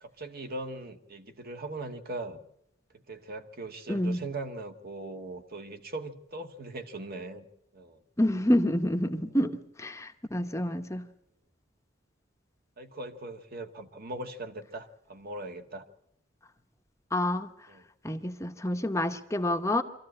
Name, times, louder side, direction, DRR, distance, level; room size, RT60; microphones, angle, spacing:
voice 1, 0.0-2.4 2.9-7.5 7.7-8.0 12.8-15.9 17.7-17.9, right 2 dB, 50° right, 6 dB, 1.5 m, -40 dB
voice 2, 3.9-4.2 8.2-11.1 17.1-17.5 18.0-19.8, left 1 dB, 15° left, 7 dB, 0.9 m, -28 dB
24.5 x 14.5 x 8.7 m, 0.75 s
head